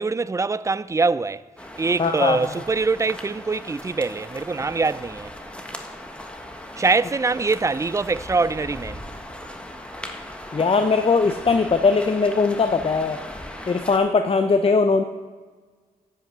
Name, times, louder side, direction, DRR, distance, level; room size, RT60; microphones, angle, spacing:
voice 1, 0.0-1.4 1.7-5.3 6.8-9.0, right 4 dB, 20° right, 0.4 m, -23 dB
sound 1, 1.6-14.0, left 1 dB, 5° left, 1.4 m, -38 dB
voice 2, 2.0-2.4 10.5-13.2 13.7-15.0, left 4 dB, 35° left, 0.6 m, -20 dB
10.5 x 5.8 x 7.3 m
cardioid pair, 55°, 16 cm